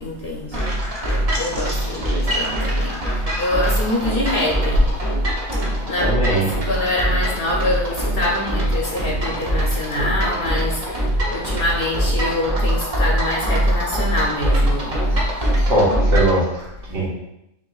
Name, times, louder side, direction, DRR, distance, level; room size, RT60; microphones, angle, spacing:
voice 1, 0.0-5.0 5.6-15.7, left 1 dB, 55° left, -2 dB, 0.8 m, -25 dB
sound 1, 0.5-16.4, equal, 35° right, 0.7 m, -22 dB
voice 2, 6.0-6.5 15.6-17.1, right 1 dB, 65° right, -7 dB, 1.7 m, -20 dB
5.7 x 2.9 x 2.3 m, 0.86 s
omnidirectional pair, 1.3 m